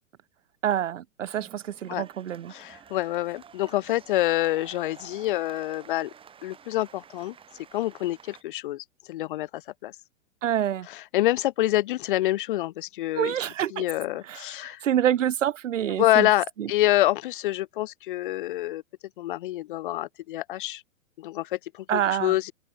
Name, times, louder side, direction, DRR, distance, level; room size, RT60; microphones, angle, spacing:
voice 1, 0.6-2.5 10.4-10.9 13.1-13.8 14.3-16.3 16.6-16.7 21.9-22.4, right 10 dB, 75° right, 0.6 m, -27 dB
sound 1, 1.4-8.4, right 7 dB, 15° right, 1.7 m, -50 dB
voice 2, 2.5-6.1 6.4-7.3 7.7-9.9 10.9-13.3 13.7-14.8 15.9-18.8 19.2-20.8 21.2-22.5, left 15 dB, 40° left, 0.7 m, -27 dB
open air
figure-of-eight pair, 105°, 38 cm